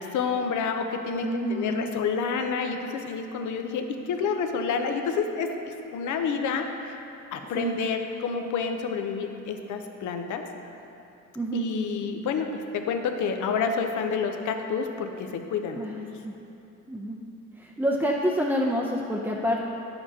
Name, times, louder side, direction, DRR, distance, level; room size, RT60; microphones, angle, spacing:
voice 1, 0.0-7.0 7.3-10.4 11.5-15.8, left 5 dB, 75° left, 5 dB, 0.7 m, -29 dB
voice 2, 1.2-1.9 7.5-7.7 11.3-11.6 15.8-16.3 16.9-17.2 17.6-19.7, equal, 5° right, -3 dB, 0.5 m, -28 dB
9.9 x 6.9 x 2.8 m, 2.9 s
cardioid pair, 90°, 30 cm